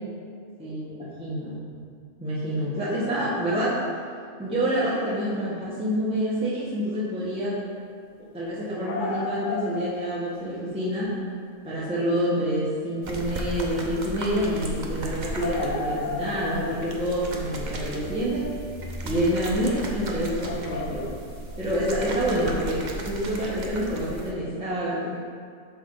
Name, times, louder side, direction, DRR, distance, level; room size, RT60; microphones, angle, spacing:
voice 1, 0.6-1.8 2.2-3.8 4.4-7.6 8.3-11.1 11.6-18.5 19.0-21.1 21.6-25.2, equal, 5° right, -10 dB, 1.5 m, -27 dB
sound 1, 8.6-10.4 10.8-11.0 12.0-12.1 12.6-12.7 13.0-13.1 15.4-17.6 20.4-21.4 22.8-22.9, left 4 dB, 50° left, 0.6 m, -34 dB
sound 2, 13.0-24.3, right 2 dB, 40° right, 0.9 m, -35 dB
12.0 x 4.1 x 4.0 m, 2.2 s
omnidirectional pair, 1.3 m